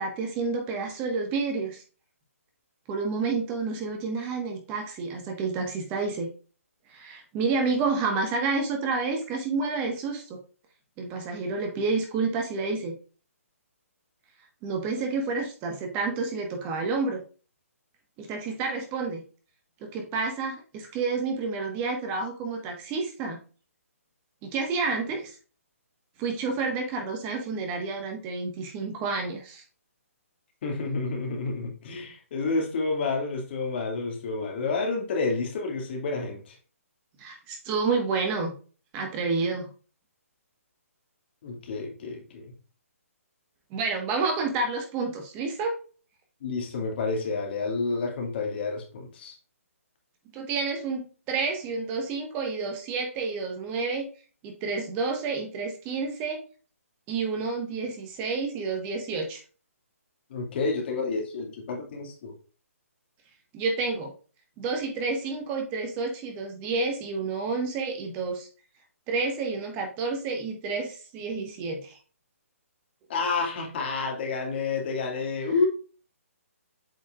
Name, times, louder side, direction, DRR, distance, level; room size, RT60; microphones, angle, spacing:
voice 1, 0.0-1.8 2.9-6.3 6.9-10.4 11.0-12.9 14.6-17.2 18.2-19.2 19.8-23.4 24.4-25.3 26.2-29.6 37.2-38.5 38.9-39.7 43.7-45.7 50.3-54.1 54.4-56.4 57.1-59.4 63.5-64.1 64.6-68.5 69.1-72.0, right 4 dB, 25° right, 1.5 m, -29 dB
voice 2, 30.6-36.5 41.4-42.5 46.4-49.3 60.3-62.3 73.1-75.7, left 4 dB, 45° left, 2.3 m, -29 dB
8.1 x 5.1 x 2.5 m
hypercardioid pair, 150°, 8 cm